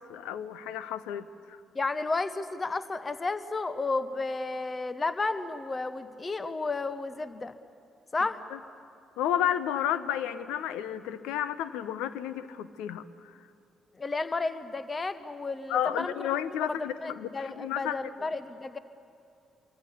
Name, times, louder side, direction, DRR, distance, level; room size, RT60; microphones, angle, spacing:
voice 1, 0.1-1.6 8.5-8.6 9.2-13.4 15.7-18.0, left 10 dB, 65° left, 15 dB, 0.8 m, -32 dB
voice 2, 1.7-7.5 8.1-8.4 13.9-16.3 16.6-16.8 17.0-18.8, left 3 dB, 30° left, 14 dB, 1.1 m, -32 dB
25.5 x 24.0 x 7.1 m, 2.6 s
figure-of-eight pair, 40°, 0 cm